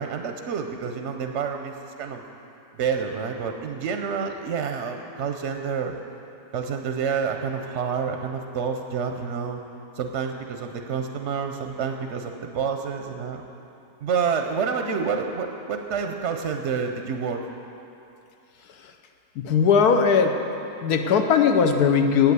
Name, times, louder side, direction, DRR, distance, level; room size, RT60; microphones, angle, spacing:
voice 1, 0.0-2.2 2.8-5.9 6.5-9.6 10.0-13.4 14.0-17.5, right 6 dB, 60° right, 5 dB, 0.8 m, -28 dB
voice 2, 19.4-20.5 20.8-22.3, left 6 dB, 75° left, 6 dB, 1.3 m, -19 dB
8.6 x 8.5 x 8.1 m, 2.7 s
omnidirectional pair, 1.7 m